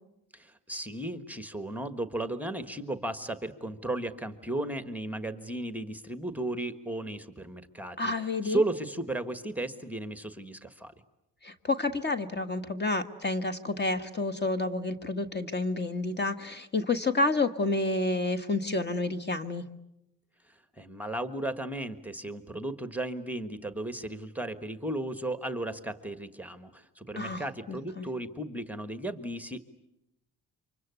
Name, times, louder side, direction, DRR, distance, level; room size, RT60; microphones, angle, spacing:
voice 1, 0.3-10.9 20.5-29.6, right 1 dB, 5° right, 9 dB, 1.4 m, -35 dB
voice 2, 8.0-8.6 11.4-19.6 27.1-28.1, left 2 dB, 30° left, 10 dB, 1.6 m, -29 dB
28.5 x 25.0 x 8.2 m, 0.85 s
cardioid pair, 95°, 34 cm